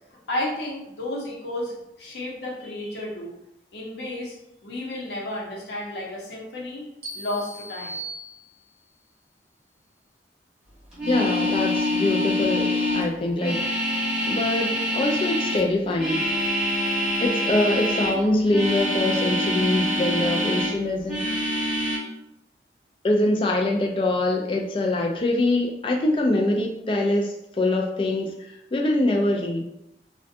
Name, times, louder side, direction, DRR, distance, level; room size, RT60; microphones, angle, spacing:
voice 1, 0.1-3.3 3.7-4.3 4.6-6.8 7.1-8.0, left 1 dB, 75° left, -4 dB, 0.7 m, -32 dB
sound 1, 7.0-8.9, right 2 dB, 70° right, 0.6 m, -38 dB
sound 2, 10.9-18.2 18.5-20.8 21.1-22.0, left 1 dB, 5° right, 0.8 m, -25 dB
voice 2, 11.1-13.8 14.3-16.2 17.2-21.4 23.0-29.6, left 2 dB, 30° left, 0 dB, 0.3 m, -24 dB
2.5 x 2.2 x 2.6 m, 0.85 s
head